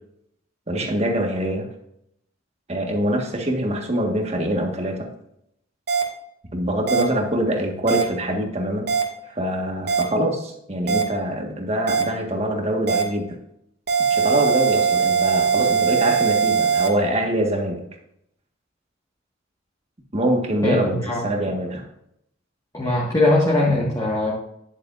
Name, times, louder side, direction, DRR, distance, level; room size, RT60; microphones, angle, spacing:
voice 1, 0.7-1.7 2.7-5.1 6.5-8.9 9.3-13.4 14.1-17.8 20.1-21.8, right 1 dB, 35° right, 2 dB, 1.6 m, -24 dB
sound 1, 5.9-6.0 6.9-7.0 7.9-8.0 8.9-9.0 9.9-10.0 10.9-11.0 11.9-12.0 12.9-13.0 13.9-16.9, right 6 dB, 60° right, 2.0 m, -20 dB
voice 2, 20.6-21.2 22.7-24.3, left 2 dB, 20° left, -5 dB, 1.7 m, -20 dB
10.0 x 9.0 x 2.6 m, 0.76 s
head